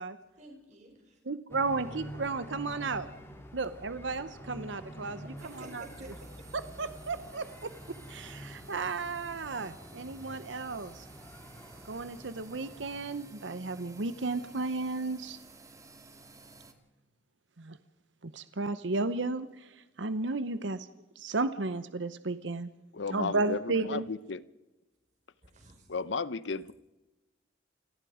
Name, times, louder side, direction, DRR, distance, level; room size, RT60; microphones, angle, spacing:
voice 1, 0.2-1.2 5.2-6.5 25.4-25.9, right 1 dB, 40° right, 5.3 m, -51 dB
voice 2, 1.2-3.1 3.5-5.9 6.5-7.5 8.1-11.1 11.8-15.4 17.6-17.8 18.2-20.9 21.2-22.7 23.1-24.1, right 3 dB, 80° right, 0.9 m, -34 dB
sound 1, 1.5-13.1, equal, 15° left, 3.4 m, -47 dB
sound 2, 5.4-16.7, right 2 dB, 20° right, 1.8 m, -53 dB
voice 3, 22.9-24.4 25.9-26.7, left 4 dB, 75° left, 0.8 m, -34 dB
28.5 x 18.0 x 5.0 m
head